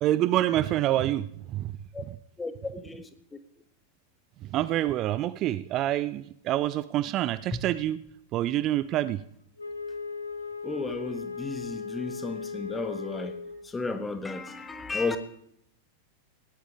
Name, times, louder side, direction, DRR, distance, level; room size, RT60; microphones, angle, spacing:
voice 1, 0.0-1.3 1.5-1.7 4.5-8.0 8.3-9.2, right 13 dB, 35° right, 0.5 m, -26 dB
voice 2, 2.4-3.1 7.5-7.6 10.6-13.4 13.7-15.2, left 3 dB, 10° left, 1.4 m, -33 dB
Wind instrument woodwind instrument, 9.6-13.8, left 5 dB, 80° left, 1.4 m, -37 dB
18.5 x 17.0 x 3.7 m
figure-of-eight pair, 90°, 0 cm